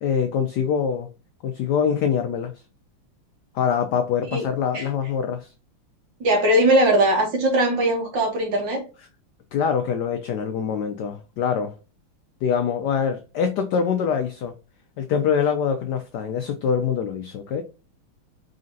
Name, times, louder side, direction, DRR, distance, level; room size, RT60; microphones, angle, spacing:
voice 1, 0.0-1.1 1.4-2.5 3.5-5.5 9.5-11.7 12.4-14.5 15.0-17.6, left 7 dB, 85° left, 0.9 m, -24 dB
voice 2, 6.2-8.8, right 1 dB, 60° right, 1.9 m, -20 dB
4.1 x 3.8 x 2.7 m
omnidirectional pair, 2.3 m